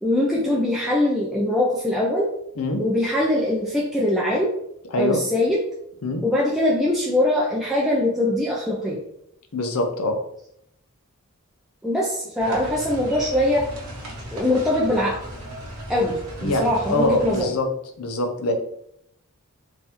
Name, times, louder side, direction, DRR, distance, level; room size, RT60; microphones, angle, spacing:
voice 1, 0.0-2.3 2.8-4.5 5.0-5.6 6.2-9.0 11.8-13.7 14.3-15.2 15.9-17.5, left 1 dB, ahead, -5 dB, 0.4 m, -22 dB
voice 2, 9.5-10.2 16.4-17.7 18.0-18.5, left 1 dB, 80° left, 4 dB, 0.7 m, -24 dB
sound 1, 12.4-17.5, equal, 85° right, 1.1 m, -36 dB
3.8 x 2.6 x 2.9 m, 0.74 s
head